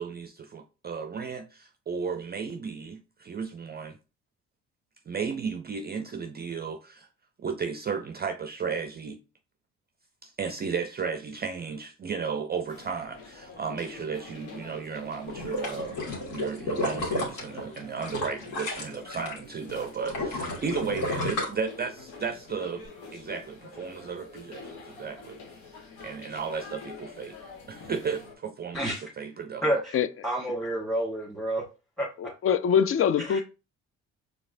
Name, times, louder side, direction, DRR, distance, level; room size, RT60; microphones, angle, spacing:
voice 1, 0.0-4.0 5.1-7.1 7.4-9.2 10.2-22.8 23.1-27.4 27.7-28.8 29.2-29.6, right 5 dB, 30° right, 0.5 m, -34 dB
sound 1, 12.7-28.3, left 4 dB, 85° left, 1.1 m, -47 dB
sound 2, 15.3-19.4 19.7-22.2 22.6-22.7, left 2 dB, 65° left, 2.0 m, -32 dB
voice 2, 28.7-29.1 29.6-30.0 30.2-31.6 32.0-32.3 33.3-33.4, right 1 dB, ahead, 1.4 m, -29 dB
voice 3, 32.2-33.4, left 8 dB, 40° left, 0.4 m, -23 dB
4.8 x 3.3 x 2.5 m
supercardioid pair, 65°, 35 cm